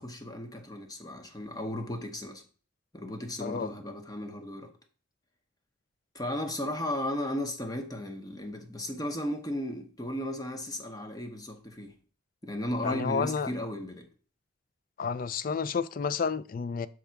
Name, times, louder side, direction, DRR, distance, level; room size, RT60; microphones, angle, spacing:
voice 1, 0.0-2.4 2.9-4.7 6.1-12.0 12.4-14.1, left 1 dB, 20° left, 0.8 m, -35 dB
voice 2, 3.4-3.7 12.8-13.5 15.0-16.9, left 5 dB, 45° left, 0.3 m, -30 dB
6.3 x 3.5 x 5.7 m
head